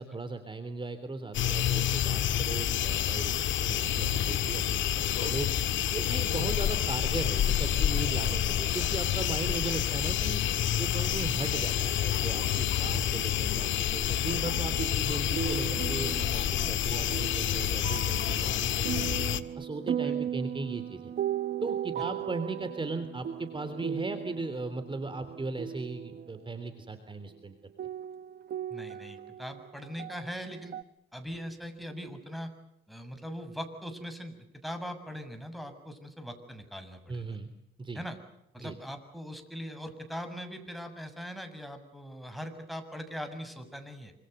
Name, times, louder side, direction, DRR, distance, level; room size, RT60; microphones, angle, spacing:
voice 1, 0.0-5.5 5.9-10.4 10.8-19.2 19.6-21.1 21.6-27.5 37.1-37.5 37.8-38.0 38.6-38.8, right 3 dB, 25° right, 10 dB, 3.3 m, -37 dB
sound 1, 1.3-19.4, left 11 dB, 70° left, 1.8 m, -28 dB
sound 2, 14.4-26.4 27.3-27.4 27.8-30.8, right 9 dB, 55° right, 1.2 m, -37 dB
voice 2, 28.7-30.8 31.1-32.5 32.9-37.4 37.9-38.2 38.5-44.1, equal, ahead, 8 dB, 6.9 m, -41 dB
28.0 x 26.5 x 6.8 m, 0.83 s
cardioid pair, 90°, 20 cm